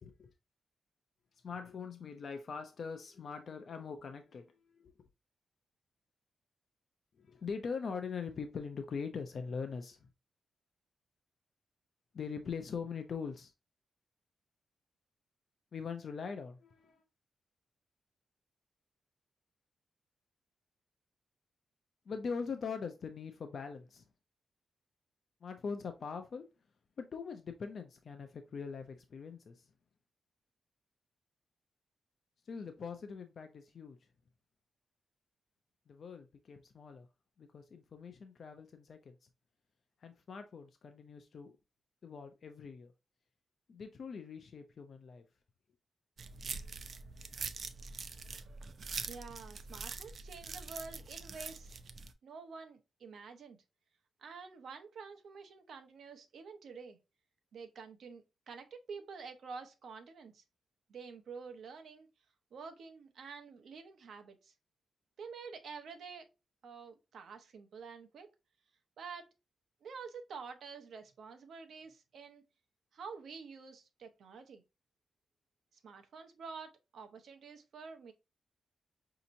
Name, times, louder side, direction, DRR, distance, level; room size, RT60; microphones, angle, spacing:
voice 1, 1.4-4.9 7.1-10.1 12.1-13.5 15.7-17.0 22.1-24.1 25.4-26.5 27.0-29.7 32.4-34.0 35.9-37.1 37.4-39.3 40.0-41.5 42.0-42.9 43.7-45.2, left 5 dB, 45° left, 0.4 m, -42 dB
sound 1, 46.2-52.1, right 4 dB, 45° right, 0.4 m, -44 dB
voice 2, 49.1-51.8 52.2-53.6 54.2-57.0 57.5-60.4 60.9-62.1 62.5-64.5 65.2-66.3 66.6-68.3 69.0-69.3 69.8-72.4 72.9-74.6 75.8-78.1, right 5 dB, 65° right, 0.7 m, -48 dB
5.2 x 2.8 x 2.6 m
wide cardioid pair, 160°, 0 cm